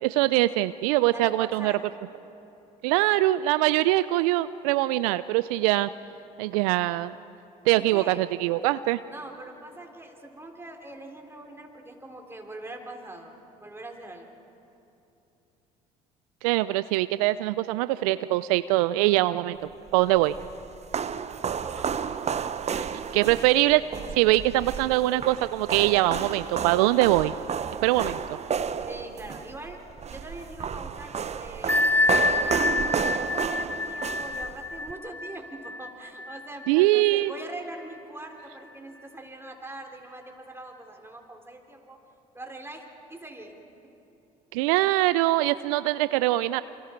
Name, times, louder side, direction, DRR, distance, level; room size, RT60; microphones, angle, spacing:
voice 1, 0.0-1.7 2.8-5.9 6.4-7.1 7.7-9.0 16.4-19.6 19.9-20.4 22.7-22.9 23.1-23.8 24.1-27.3 27.8-28.4 36.7-37.3 44.5-46.6, right 17 dB, 80° right, 15 dB, 0.4 m, -23 dB
voice 2, 1.1-1.9 7.7-8.2 9.1-13.3 13.6-14.3 21.6-21.9 28.9-29.8 30.1-31.9 32.7-42.0 42.3-43.6, right 1 dB, 15° right, 2 dB, 3.7 m, -42 dB
sound 1, 19.9-34.9, right 7 dB, 35° right, 1.0 m, -32 dB
Bell, 31.7-37.1, left 3 dB, 10° left, 0.6 m, -27 dB
28.0 x 25.0 x 4.5 m, 3.0 s
hypercardioid pair, 65°, 18 cm